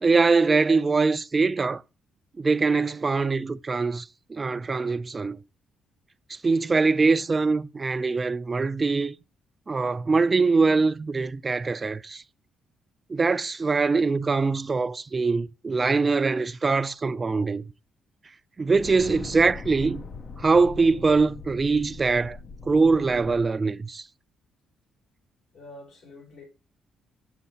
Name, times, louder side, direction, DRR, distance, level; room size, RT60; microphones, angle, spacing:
voice 1, 0.0-1.8 2.4-5.4 6.3-9.1 9.7-12.2 13.1-17.7 18.6-20.0 20.4-22.4 22.7-24.0, right 4 dB, 30° right, 0.3 m, -23 dB
sound 1, 18.7-23.5, left 5 dB, 50° left, 0.6 m, -41 dB
voice 2, 25.5-26.4, left 2 dB, 75° left, 3.4 m, -46 dB
7.1 x 6.6 x 2.9 m
cardioid pair, 90°, 0 cm